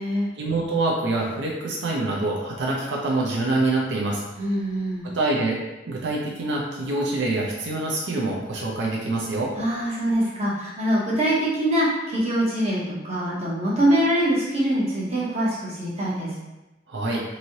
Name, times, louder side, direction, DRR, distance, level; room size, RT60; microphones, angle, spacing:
voice 1, 0.4-4.2 5.0-5.6 5.9-9.5 16.9-17.2, right 2 dB, 85° right, -3 dB, 0.5 m, -25 dB
voice 2, 4.4-5.1 9.6-16.3, right 1 dB, 35° right, -6 dB, 0.9 m, -24 dB
3.1 x 2.7 x 2.7 m, 1.0 s
head